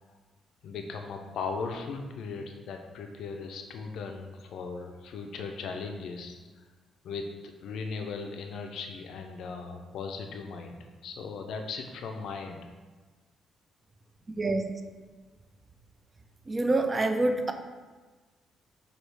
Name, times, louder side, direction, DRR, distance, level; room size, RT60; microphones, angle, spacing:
voice 1, 0.6-6.4 7.0-12.7, left 4 dB, 75° left, 4 dB, 0.4 m, -38 dB
voice 2, 14.4-14.7 16.5-17.5, right 2 dB, 30° right, 6 dB, 0.4 m, -26 dB
6.0 x 2.3 x 3.3 m, 1.3 s
cardioid pair, 90°, 0 cm